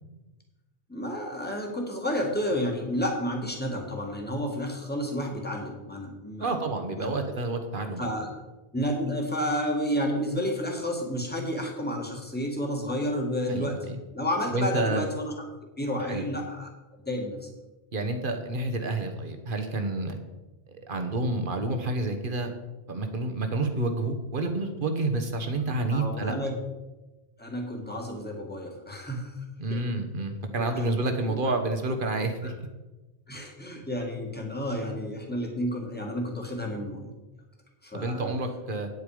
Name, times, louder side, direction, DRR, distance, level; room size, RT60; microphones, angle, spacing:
voice 1, 0.9-6.6 7.0-7.1 8.0-8.3 8.7-13.9 14.1-15.3 15.8-16.7 17.1-17.5 25.7-26.5 27.4-29.5 29.7-29.9 30.6-30.9 32.4-32.5 33.3-37.1 37.8-38.3, equal, 10° left, 0 dB, 1.9 m, -31 dB
voice 2, 6.4-8.1 13.5-14.0 14.5-15.0 16.1-16.3 17.9-20.2 20.7-22.5 22.9-26.3 29.6-32.5 37.9-38.9, right 2 dB, 55° right, 6 dB, 1.4 m, -29 dB
9.4 x 8.5 x 5.0 m, 1.1 s
omnidirectional pair, 1.1 m